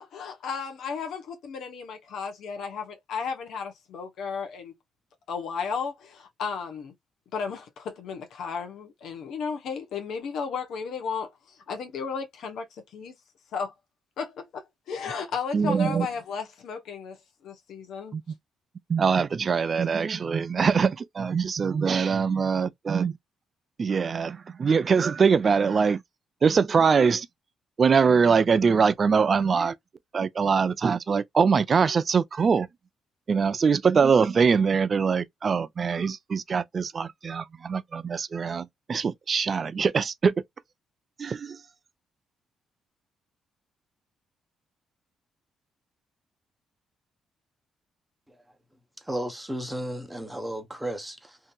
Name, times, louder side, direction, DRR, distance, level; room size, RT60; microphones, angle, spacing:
voice 1, 0.0-4.7 5.3-6.9 7.3-13.2 13.5-13.7 14.2-17.2 17.4-18.1, left 5 dB, 75° left, 0.7 m, -34 dB
voice 2, 15.5-16.1 18.1-18.3 18.9-23.2 23.8-26.0 26.4-27.3 27.8-29.8 30.1-32.7 33.3-40.3 41.2-41.6, right 5 dB, 40° right, 0.4 m, -23 dB
voice 3, 49.0-51.4, right 1 dB, 5° right, 0.8 m, -34 dB
2.8 x 2.6 x 2.2 m
cardioid pair, 90°, 0 cm